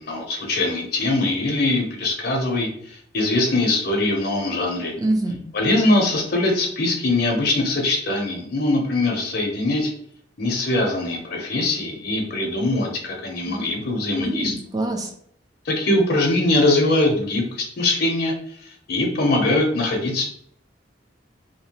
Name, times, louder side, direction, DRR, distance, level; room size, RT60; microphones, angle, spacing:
voice 1, 0.0-4.9 5.5-9.9 10.4-14.5 15.6-20.2, left 2 dB, 50° left, 1 dB, 0.6 m, -22 dB
voice 2, 5.0-5.4 13.5-13.7 14.2-15.1, right 2 dB, 20° right, 2 dB, 0.4 m, -25 dB
2.8 x 2.1 x 2.8 m, 0.64 s
head